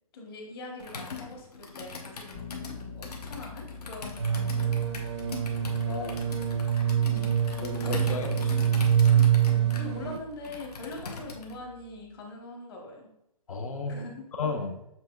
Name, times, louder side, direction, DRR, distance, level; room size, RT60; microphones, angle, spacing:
voice 1, 0.1-4.9 7.0-7.3 9.5-13.1 13.9-14.2, left 2 dB, 40° left, 0 dB, 1.1 m, -42 dB
Computer keyboard, 0.8-11.6, left 4 dB, 80° left, 1.1 m, -41 dB
Bass guitar, 2.3-12.1, left 4 dB, 20° left, 0.4 m, -47 dB
sound 1, 4.2-10.2, right 9 dB, 45° right, 0.4 m, -25 dB
voice 2, 5.9-6.2 7.6-8.7 13.5-14.0 14.3-14.8, left 4 dB, 60° left, 6 dB, 0.8 m, -34 dB
7.3 x 3.0 x 2.4 m, 0.84 s
hypercardioid pair, 160°, 20 cm